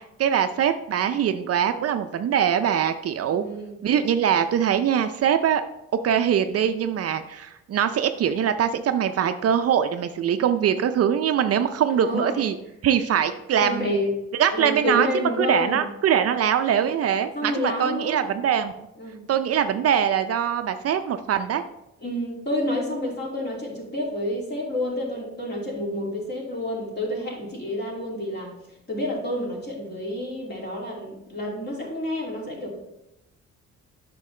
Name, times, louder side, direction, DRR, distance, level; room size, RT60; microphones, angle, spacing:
voice 1, 0.0-3.4 3.8-5.6 6.0-12.6 12.8-14.0 14.4-15.1 15.4-18.7 19.3-21.6, right 8 dB, 55° right, 9 dB, 0.5 m, -23 dB
voice 2, 3.3-3.8 11.9-12.4 13.6-14.1 14.5-15.9 17.3-18.3 19.0-19.2 22.0-28.5 28.9-32.8, left 1 dB, 35° left, -2 dB, 2.6 m, -29 dB
8.2 x 6.1 x 3.3 m, 0.88 s
cardioid pair, 90°, 30 cm